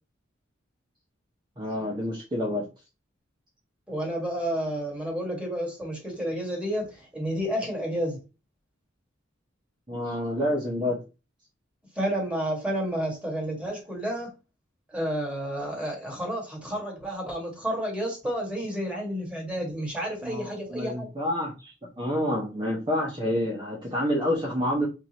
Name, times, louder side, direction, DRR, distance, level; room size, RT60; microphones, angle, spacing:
voice 1, 1.6-2.7 9.9-11.0 20.2-24.9, left 1 dB, 25° right, -3 dB, 0.9 m, -28 dB
voice 2, 3.9-8.2 12.0-14.3 14.9-21.1, equal, 5° right, -2 dB, 1.7 m, -30 dB
4.7 x 2.5 x 2.9 m, 0.29 s
head